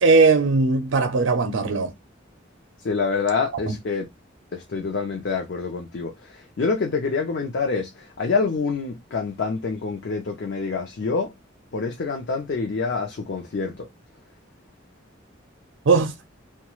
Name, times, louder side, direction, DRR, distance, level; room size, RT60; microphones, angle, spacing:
voice 1, 0.0-1.9 3.7-3.8 15.9-16.1, right 4 dB, 85° right, 0.5 m, -18 dB
voice 2, 2.8-4.1 4.5-11.3 11.7-13.9, left 4 dB, 65° left, 0.5 m, -26 dB
2.3 x 2.2 x 3.0 m
head